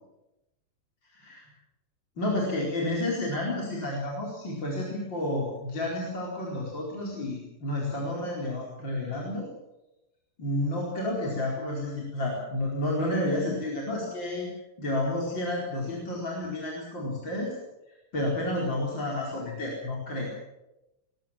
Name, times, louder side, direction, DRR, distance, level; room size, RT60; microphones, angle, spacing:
voice 1, 2.2-9.5 10.4-14.5 14.8-17.5 18.1-20.3, left 1 dB, 25° left, -3 dB, 4.9 m, -30 dB
22.0 x 21.0 x 7.4 m, 0.95 s
omnidirectional pair, 4.9 m